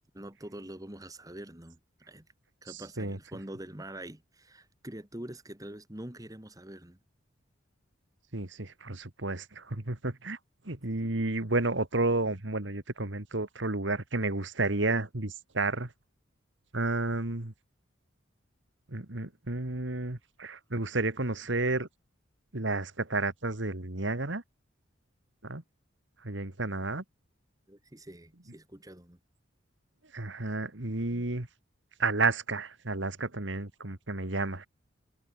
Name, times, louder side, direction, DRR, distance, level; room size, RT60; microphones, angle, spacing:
voice 1, 0.1-1.8 2.1-2.3 2.6-7.0 10.9-11.2 27.7-29.2, right 1 dB, 20° right, 2.1 m, -45 dB
voice 2, 2.7-3.2 8.3-10.4 10.6-15.9 16.7-17.5 18.9-21.9 22.5-24.4 25.4-25.6 26.2-27.0 30.1-31.5 32.0-34.7, right 2 dB, 65° right, 2.2 m, -31 dB
head